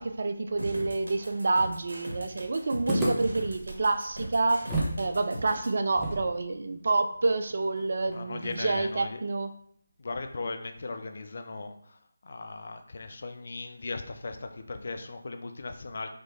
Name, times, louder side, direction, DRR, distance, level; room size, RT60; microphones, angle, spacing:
voice 1, 0.0-9.5, right 3 dB, 50° right, 8 dB, 0.4 m, -28 dB
sound 1, 0.6-5.7, right 1 dB, 70° right, 1.2 m, -40 dB
sound 2, 2.9-5.0 5.3-5.4 5.9-9.1, right 1 dB, 5° right, 0.8 m, -34 dB
voice 2, 8.1-9.2 10.0-16.1, left 3 dB, 50° left, 6 dB, 0.5 m, -38 dB
4.3 x 3.0 x 3.3 m, 0.67 s
figure-of-eight pair, 160°, 0 cm